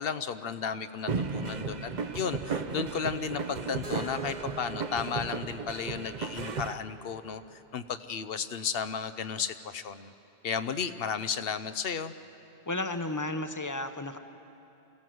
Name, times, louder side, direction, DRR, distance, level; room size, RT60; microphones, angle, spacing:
voice 1, 0.0-10.1 10.4-12.1, left 6 dB, 65° left, 11 dB, 0.9 m, -34 dB
sound 1, 1.1-6.7, right 4 dB, 45° right, 0.8 m, -35 dB
Keyboard (musical), 3.8-7.7, right 2 dB, 65° right, 3.3 m, -47 dB
voice 2, 12.7-14.2, left 2 dB, 20° left, 8 dB, 0.8 m, -33 dB
25.0 x 16.0 x 7.7 m, 2.9 s
omnidirectional pair, 1.1 m